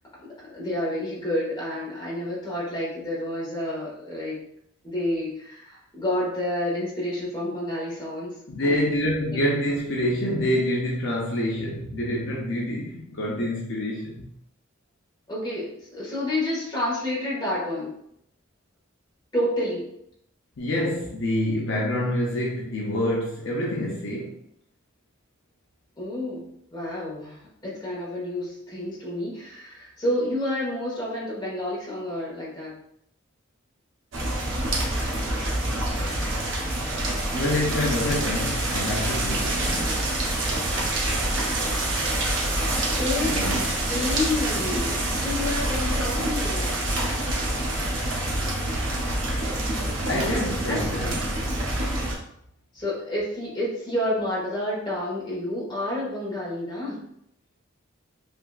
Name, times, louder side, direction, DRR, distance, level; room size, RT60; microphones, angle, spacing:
voice 1, 0.4-4.4 4.8-8.3 8.6-9.4 15.3-18.0 19.3-19.9 26.0-32.7 42.9-43.4 43.9-46.8 49.8-50.4 50.7-51.1 52.7-57.0, left 1 dB, 20° left, -7 dB, 1.2 m, -29 dB
voice 2, 8.5-14.2 20.6-24.4 37.3-40.1 40.4-40.7 43.2-43.6 50.0-51.2 51.7-52.0, left 1 dB, 60° left, -3 dB, 0.6 m, -27 dB
sound 1, 34.1-52.2, right 1 dB, 70° right, 0.7 m, -26 dB
3.4 x 2.8 x 2.3 m, 0.72 s
head